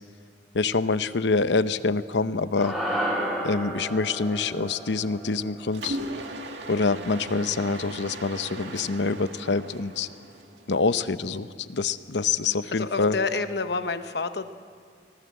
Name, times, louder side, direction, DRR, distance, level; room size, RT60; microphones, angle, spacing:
voice 1, 0.5-2.7 3.4-6.0 6.7-10.1 10.7-13.2, left 4 dB, 85° left, 13 dB, 0.8 m, -26 dB
sound 1, 2.6-7.0, right 1 dB, 5° right, 6.8 m, -32 dB
Mechanisms, 5.7-10.8, right 1 dB, 90° right, 1.9 m, -38 dB
voice 2, 12.7-14.5, left 4 dB, 65° left, 10 dB, 1.0 m, -29 dB
25.0 x 19.5 x 7.7 m, 2.1 s
head